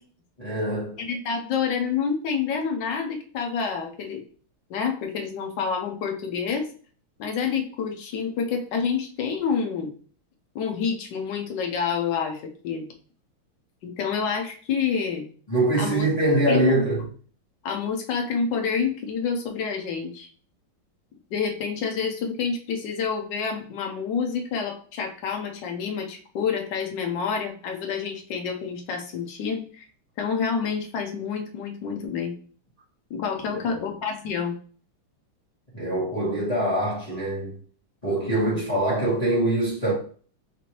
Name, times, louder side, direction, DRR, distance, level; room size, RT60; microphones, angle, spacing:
voice 1, 0.4-1.0 15.5-17.0 33.5-33.8 35.7-37.6 38.0-39.9, right 2 dB, 20° left, 1.2 m, -24 dB
voice 2, 1.0-4.2 4.7-6.7 7.2-9.9 10.5-12.9 13.8-15.2 15.8-16.1 16.5-16.8 17.6-20.3 21.3-29.9 30.2-32.3 33.1-34.6, left 6 dB, 65° left, 1.4 m, -28 dB
5.9 x 2.7 x 3.0 m
omnidirectional pair, 2.4 m